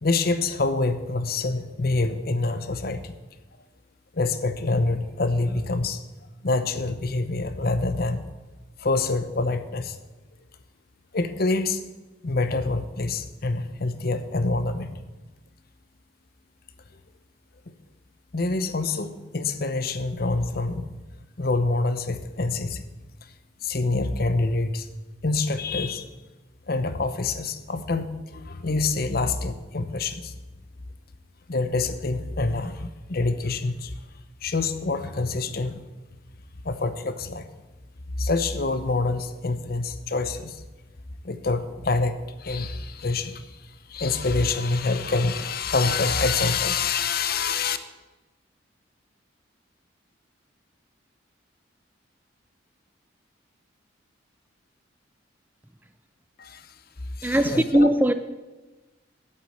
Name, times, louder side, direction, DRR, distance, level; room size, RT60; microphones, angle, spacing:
voice 1, 0.0-3.1 4.1-6.1 6.4-8.3 8.8-10.0 11.1-11.8 12.2-14.9 17.7-17.8 18.3-20.9 21.4-22.8 23.6-24.9 25.2-26.1 26.7-30.3 31.5-33.9 34.4-35.8 36.6-37.5 38.2-40.6 41.2-47.8 56.4-56.7 57.2-57.9, left 3 dB, 50° left, 0.8 m, -26 dB
voice 2, 57.2-58.1, right 1 dB, 10° right, 0.4 m, -19 dB
8.4 x 8.3 x 9.1 m
head